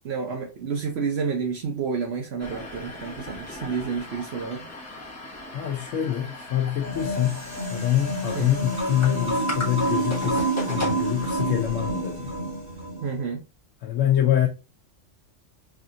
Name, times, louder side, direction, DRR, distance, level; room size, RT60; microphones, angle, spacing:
voice 1, 0.0-4.7 8.3-8.5 13.0-13.4, right 5 dB, 65° right, 0.9 m, -30 dB
sound 1, 2.4-12.8, left 1 dB, 15° left, 1.0 m, -38 dB
voice 2, 5.5-7.4 7.7-12.3 13.8-14.5, left 11 dB, 85° left, 1.0 m, -25 dB
sound 2, 6.8-13.1, right 1 dB, 35° right, 1.9 m, -28 dB
4.8 x 2.7 x 2.5 m
omnidirectional pair, 1.3 m